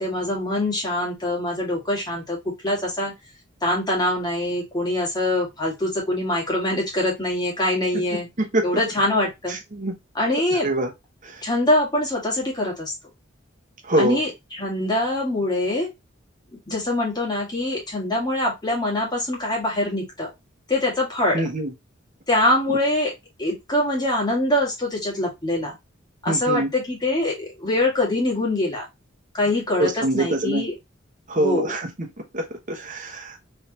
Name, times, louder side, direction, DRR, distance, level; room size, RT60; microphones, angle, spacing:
voice 1, 0.0-2.4 2.6-3.1 3.6-8.3 8.6-9.6 10.2-10.7 11.4-12.9 14.0-15.9 16.7-20.3 20.7-21.5 22.3-23.1 23.4-25.8 26.2-28.9 29.3-30.7 31.4-31.7, left 1 dB, 20° left, 1.8 m, -24 dB
voice 2, 7.9-8.7 9.5-9.9 10.5-10.9 11.2-11.3 13.8-14.2 21.3-21.7 22.7-22.8 26.3-26.7 29.8-30.6 31.3-32.1 32.3-33.4, right 1 dB, 40° right, 1.1 m, -25 dB
3.6 x 3.3 x 2.9 m
head